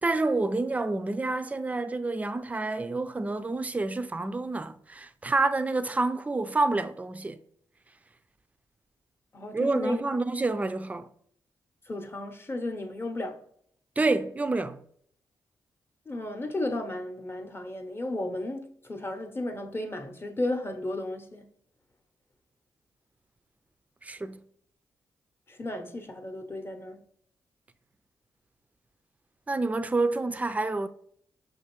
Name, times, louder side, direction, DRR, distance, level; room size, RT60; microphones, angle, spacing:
voice 1, 0.0-7.4 9.5-11.1 14.0-14.8 24.0-24.4 29.5-30.9, right 3 dB, 15° right, 0.4 m, -28 dB
voice 2, 9.3-10.2 11.9-13.4 16.1-21.5 25.5-27.0, left 1 dB, 30° left, 0.7 m, -34 dB
6.0 x 2.6 x 2.9 m
supercardioid pair, 55°, 8 cm